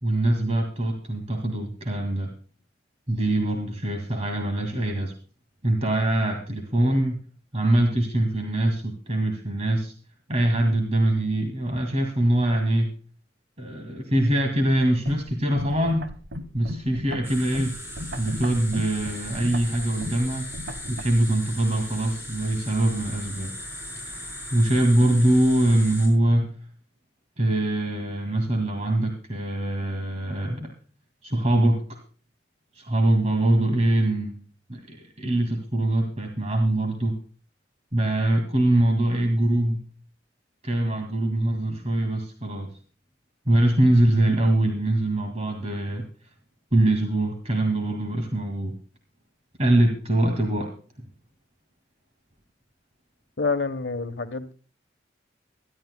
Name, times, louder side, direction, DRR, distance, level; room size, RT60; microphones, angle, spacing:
voice 1, 0.0-2.3 3.1-5.1 5.6-7.2 7.5-9.9 10.3-12.9 13.6-16.1 16.5-17.7 18.2-20.5 20.9-23.5 24.0-24.2 24.5-26.6 27.4-30.7 31.2-31.8 32.7-37.1 37.9-39.9 40.6-42.7 43.5-46.0 46.7-48.7 49.6-50.7 51.0-51.1, right 1 dB, 35° right, 2.1 m, -23 dB
sound 1, 15.1-21.0, equal, 70° right, 1.3 m, -36 dB
sound 2, 17.2-26.1, left 1 dB, 10° right, 6.6 m, -38 dB
voice 2, 53.4-54.5, left 4 dB, 75° left, 1.1 m, -27 dB
23.5 x 12.0 x 2.2 m
head